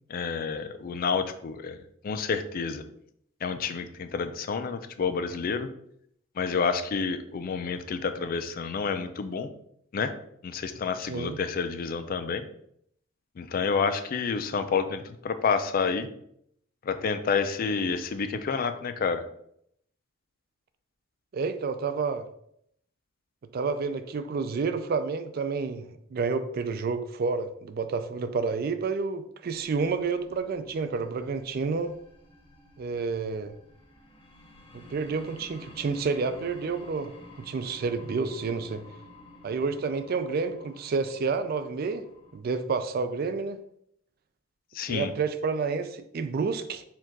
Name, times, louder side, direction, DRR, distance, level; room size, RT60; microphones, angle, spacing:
voice 1, 0.1-1.8 2.0-2.8 3.4-5.7 6.4-9.5 9.9-10.1 10.4-12.4 13.4-16.1 16.8-19.2 44.7-45.1, left 5 dB, 45° left, 0.3 m, -29 dB
voice 2, 11.0-11.4 21.3-22.2 23.5-32.0 32.8-33.5 34.7-37.1 37.4-38.8 39.4-42.0 42.3-43.6 44.9-46.8, right 4 dB, 45° right, 0.3 m, -29 dB
sound 1, 29.4-42.4, left 2 dB, 25° left, 0.7 m, -52 dB
4.4 x 2.4 x 3.9 m
head